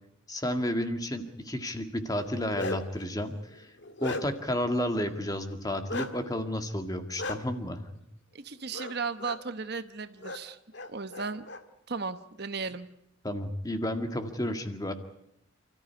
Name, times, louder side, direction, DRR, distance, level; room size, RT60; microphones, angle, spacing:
voice 1, 0.3-3.7 4.0-7.8 13.2-14.9, left 1 dB, 20° left, 7 dB, 2.0 m, -31 dB
Bark, 2.2-3.0 3.5-4.5 5.9-6.1 7.2-7.4 8.7-8.9 9.2-9.4 10.2-10.4 10.7-11.6, left 2 dB, 55° left, 2.0 m, -36 dB
voice 2, 8.3-10.6 10.9-11.5 11.9-12.9, right 4 dB, 50° right, 11 dB, 1.1 m, -35 dB
29.5 x 14.0 x 9.6 m, 0.81 s
head